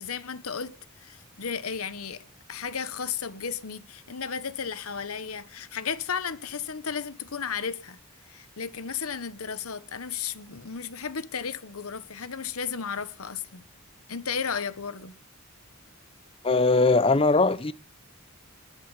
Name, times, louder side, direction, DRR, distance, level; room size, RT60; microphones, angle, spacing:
voice 1, 0.0-8.0 8.3-13.6 14.1-15.1, left 6 dB, 80° left, 1.1 m, -34 dB
voice 2, 16.4-17.7, left 3 dB, 25° left, 0.6 m, -20 dB
21.0 x 7.3 x 7.2 m
head